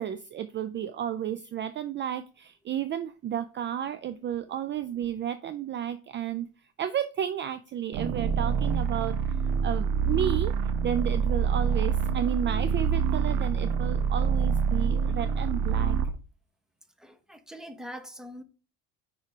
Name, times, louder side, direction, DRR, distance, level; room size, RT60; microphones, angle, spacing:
voice 1, 0.0-6.5 6.8-10.5 10.8-16.0, right 10 dB, 35° right, 0.4 m, -32 dB
sound 1, 7.9-16.2, right 6 dB, 65° right, 1.0 m, -26 dB
voice 2, 17.0-18.4, equal, ahead, 0.9 m, -43 dB
5.6 x 4.7 x 4.9 m
supercardioid pair, 100°, 35 cm